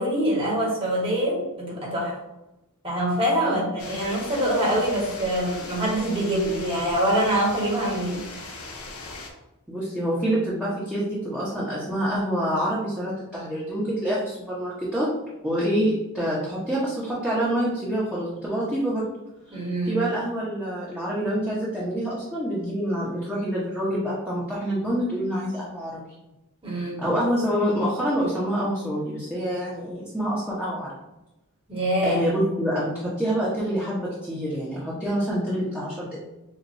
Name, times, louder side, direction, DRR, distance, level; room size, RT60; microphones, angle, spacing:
voice 1, 0.0-2.2 2.8-8.7 19.5-20.0 26.6-27.1 31.7-32.2, right 1 dB, 25° right, -5 dB, 1.6 m, -25 dB
sound 1, 3.8-9.3, left 3 dB, 80° left, 1.1 m, -39 dB
voice 2, 9.7-15.1 15.4-19.0 19.5-19.6 19.8-26.0 26.7-30.9 32.0-36.2, equal, 5° right, -9 dB, 1.0 m, -26 dB
7.2 x 2.5 x 2.7 m, 0.96 s
head